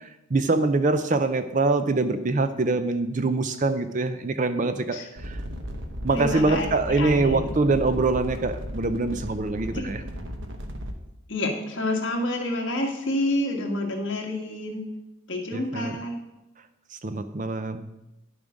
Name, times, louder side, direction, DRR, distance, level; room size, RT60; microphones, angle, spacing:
voice 1, 0.0-5.4 6.0-10.0 15.5-16.0 17.0-17.9, right 3 dB, 35° right, 10 dB, 0.5 m, -24 dB
sound 1, 5.2-10.9, equal, 60° right, 1.0 m, -35 dB
voice 2, 6.1-7.8 9.7-9.9 11.3-14.9 15.3-16.1, left 1 dB, 55° left, 0 dB, 1.8 m, -29 dB
10.5 x 7.1 x 5.2 m, 0.95 s
head